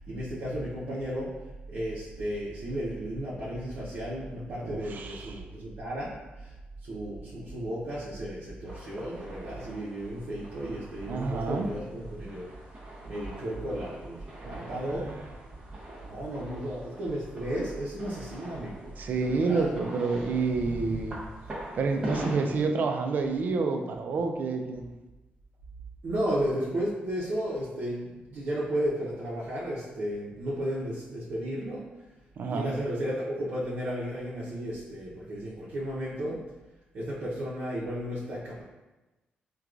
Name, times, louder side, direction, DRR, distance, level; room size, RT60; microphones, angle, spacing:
voice 1, 0.0-1.3 1.7-6.5 6.8-12.5 13.0-15.1 16.0-18.9 19.2-19.7 26.0-31.9 32.5-36.4 36.9-38.6, equal, 75° right, -9 dB, 0.7 m, -34 dB
voice 2, 4.6-5.4 11.1-11.7 14.4-15.2 19.0-21.2 21.7-24.8 32.4-32.7, right 4 dB, 55° right, 4 dB, 0.4 m, -29 dB
sound 1, 8.7-22.5, right 1 dB, 30° right, 0.8 m, -43 dB
4.5 x 2.3 x 2.4 m, 1.1 s
cardioid pair, 120°, 3 cm